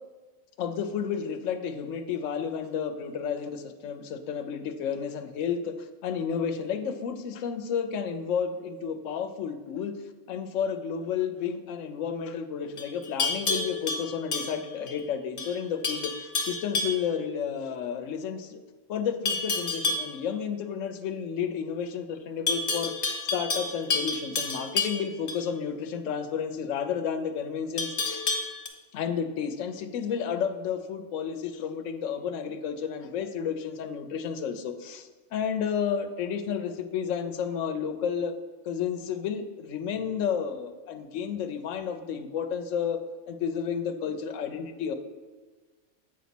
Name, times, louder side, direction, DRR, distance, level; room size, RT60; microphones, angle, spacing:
voice 1, 0.6-9.9 10.3-18.6 18.9-28.2 28.9-38.3 38.7-43.0 43.3-44.9, left 7 dB, 85° left, 7 dB, 1.0 m, -31 dB
Livestock farm animals working animals, 12.8-15.0 15.4-15.6 15.8-17.1 19.3-20.1 22.5-25.4 27.8-28.7, left 3 dB, 50° left, 1.0 m, -30 dB
8.1 x 4.1 x 5.9 m, 1.4 s
omnidirectional pair, 1.3 m